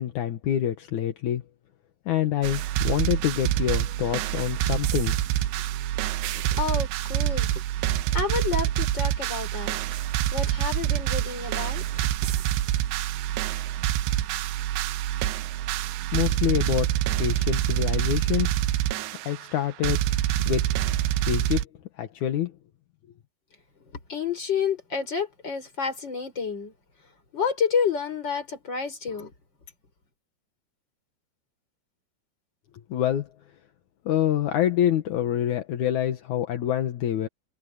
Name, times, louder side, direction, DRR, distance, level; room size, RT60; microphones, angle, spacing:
voice 1, 0.0-1.4 2.1-5.1 16.1-16.9 17.2-18.6 19.3-20.0 20.4-20.7 21.3-21.6 22.0-22.5 32.9-33.3 34.1-37.3, left 11 dB, 60° left, 2.2 m, -26 dB
sound 1, 2.4-21.6, right 12 dB, 90° right, 3.2 m, -26 dB
voice 2, 6.3-7.5 8.1-9.8 10.3-11.8 24.1-26.7 27.3-29.3, left 6 dB, 25° left, 5.6 m, -29 dB
omnidirectional pair, 4.9 m